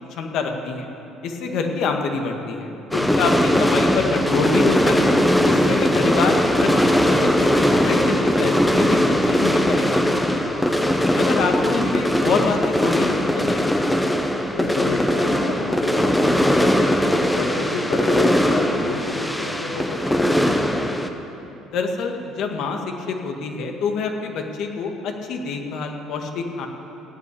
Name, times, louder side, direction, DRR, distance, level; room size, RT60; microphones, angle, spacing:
voice 1, 0.2-0.9 1.2-2.7 3.0-5.1 5.5-10.0 10.3-10.5 11.1-13.8 21.7-26.7, left 4 dB, 65° left, 3 dB, 1.9 m, -26 dB
voice 2, 2.8-3.3 10.3-11.0 14.5-20.6, left 3 dB, 85° left, -3 dB, 1.8 m, -30 dB
sound 1, 2.9-21.1, equal, 5° left, 1.1 m, -20 dB
16.5 x 8.9 x 8.5 m, 3.0 s
cardioid pair, 100°, 0 cm